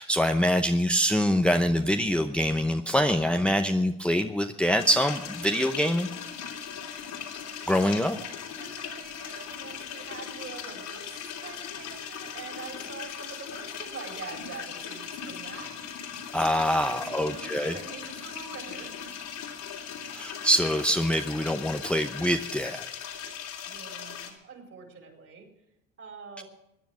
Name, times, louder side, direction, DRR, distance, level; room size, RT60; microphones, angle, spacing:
voice 1, 0.0-6.1 7.7-8.2 16.3-17.8 20.1-22.8, equal, 5° left, 6 dB, 0.8 m, -25 dB
sound 1, 4.8-24.3, left 8 dB, 70° left, 3.1 m, -39 dB
voice 2, 8.6-15.8 16.8-18.9 23.6-25.5 26.0-26.4, right 5 dB, 45° right, 4 dB, 4.8 m, -44 dB
17.0 x 10.5 x 6.3 m, 0.86 s
hypercardioid pair, 70°, 33 cm